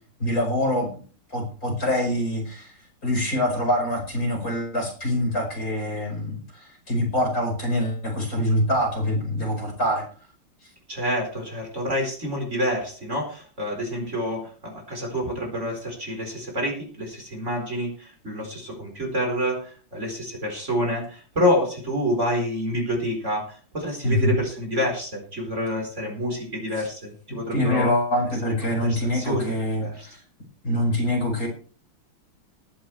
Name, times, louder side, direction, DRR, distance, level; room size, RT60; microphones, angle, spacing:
voice 1, 0.2-0.9 1.3-2.7 3.0-10.1 24.0-24.4 26.8-26.9 27.5-30.2 30.6-31.5, left 1 dB, 40° left, 0 dB, 5.2 m, -25 dB
voice 2, 10.9-27.9 28.7-29.5 29.8-30.1, equal, 30° right, 0 dB, 4.8 m, -28 dB
19.5 x 11.5 x 3.3 m, 0.41 s
omnidirectional pair, 2.3 m